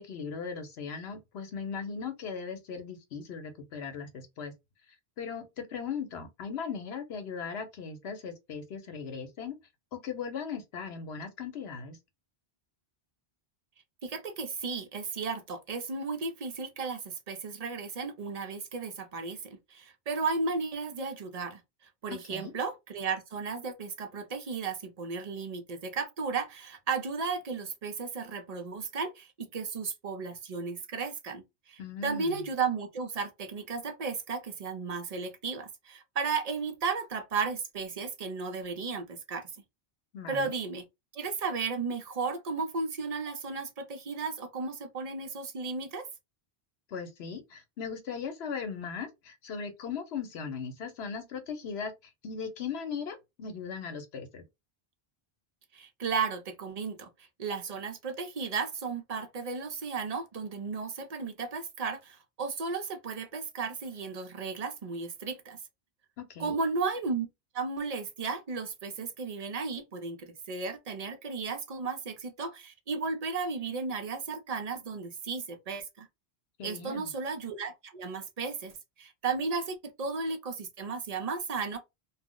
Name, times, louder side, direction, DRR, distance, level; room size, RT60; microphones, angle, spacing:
voice 1, 0.0-4.5 5.2-9.5 9.9-12.0 22.1-22.5 31.8-32.4 40.1-40.5 46.9-51.9 52.2-54.4 66.2-66.6 76.6-77.1, left 6 dB, 80° left, 1.0 m, -38 dB
voice 2, 14.0-19.4 19.7-21.6 22.0-31.4 31.7-39.5 40.3-40.8 41.1-46.1 55.7-57.1 57.4-65.6 66.4-67.3 67.5-76.1 76.6-81.8, right 4 dB, 45° right, 0.6 m, -34 dB
2.4 x 2.0 x 3.6 m
omnidirectional pair, 1.1 m